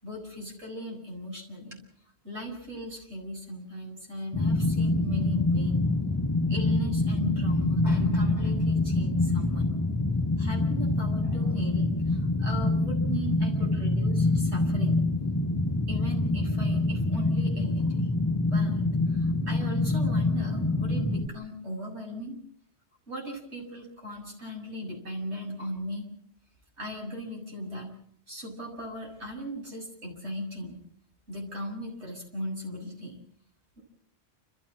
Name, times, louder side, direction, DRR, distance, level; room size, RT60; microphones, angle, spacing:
voice 1, 0.0-1.8 2.2-5.9 6.5-9.7 10.4-15.0 15.9-18.9 19.1-22.4 23.1-26.1 26.8-27.9 28.3-30.8 31.3-33.2, equal, 90° right, 0 dB, 7.5 m, -37 dB
sound 1, 4.3-21.3, left 2 dB, 20° left, 1.3 m, -26 dB
30.0 x 14.5 x 7.5 m, 0.63 s
omnidirectional pair, 1.1 m